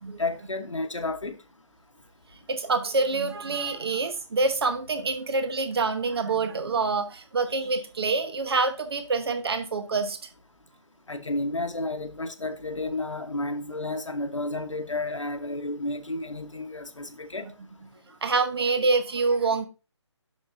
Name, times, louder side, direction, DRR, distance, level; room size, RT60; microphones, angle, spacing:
voice 1, 0.2-1.4 11.1-17.5, left 2 dB, 90° left, 0.9 m, -31 dB
voice 2, 2.5-10.2 18.2-19.7, right 4 dB, 55° right, 1.1 m, -26 dB
8.1 x 6.6 x 2.5 m
figure-of-eight pair, 150°, 16 cm